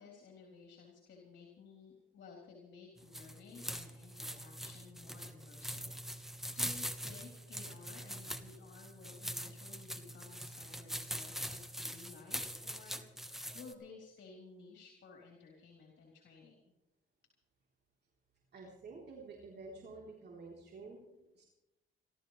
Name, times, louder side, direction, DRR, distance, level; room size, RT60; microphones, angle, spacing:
voice 1, 0.0-16.6, left 5 dB, 65° left, -1 dB, 3.8 m, -55 dB
sound 1, 3.0-13.7, equal, ahead, 1.4 m, -43 dB
voice 2, 18.5-21.4, right 3 dB, 55° right, -2 dB, 3.8 m, -50 dB
28.0 x 13.5 x 3.3 m, 0.95 s
cardioid pair, 90°, 20 cm